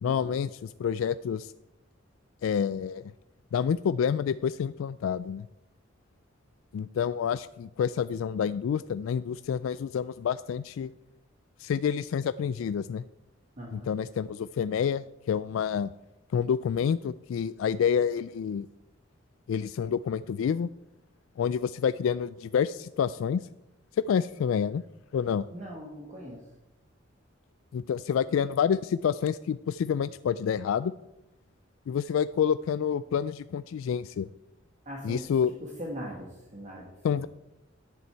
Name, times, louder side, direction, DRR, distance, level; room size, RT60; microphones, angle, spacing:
voice 1, 0.0-1.5 2.4-3.1 3.5-5.5 6.7-10.9 11.6-13.0 13.7-15.9 16.3-18.7 19.5-20.7 21.4-23.5 24.1-24.8 25.1-25.5 27.7-30.9 31.9-34.3 35.0-35.5 37.0-37.3, left 7 dB, 85° left, 15 dB, 0.3 m, -28 dB
voice 2, 13.6-13.9 25.5-26.5 34.8-37.3, equal, 35° right, -1 dB, 1.7 m, -41 dB
11.0 x 9.5 x 4.5 m, 0.91 s
head